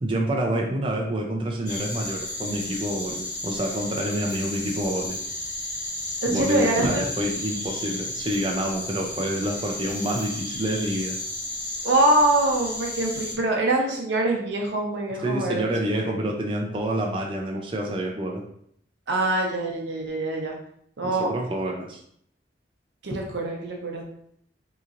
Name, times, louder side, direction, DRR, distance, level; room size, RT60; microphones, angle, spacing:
voice 1, 0.0-5.2 6.3-11.2 15.2-18.4 21.0-22.0, right 1 dB, 30° right, 0 dB, 0.4 m, -28 dB
sound 1, 1.7-13.4, left 1 dB, 45° left, 1.4 m, -33 dB
voice 2, 6.2-7.0 11.8-16.0 19.1-20.5 21.0-21.3 23.0-24.0, right 2 dB, 85° right, 0 dB, 0.8 m, -24 dB
3.8 x 2.9 x 2.5 m, 0.68 s
head